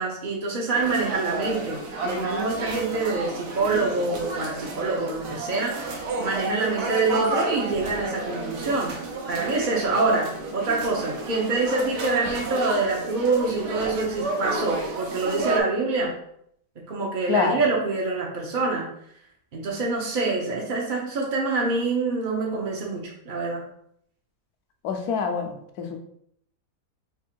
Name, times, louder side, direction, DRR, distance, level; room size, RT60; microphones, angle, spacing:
voice 1, 0.0-9.0 9.3-16.1 16.9-18.9 19.5-23.6, right 3 dB, 55° right, -2 dB, 0.5 m, -26 dB
sound 1, 0.7-15.6, right 2 dB, 80° right, 1.2 m, -31 dB
voice 2, 17.3-17.6 24.8-26.0, left 5 dB, 70° left, 4 dB, 1.0 m, -26 dB
3.5 x 2.5 x 4.4 m, 0.70 s
omnidirectional pair, 1.8 m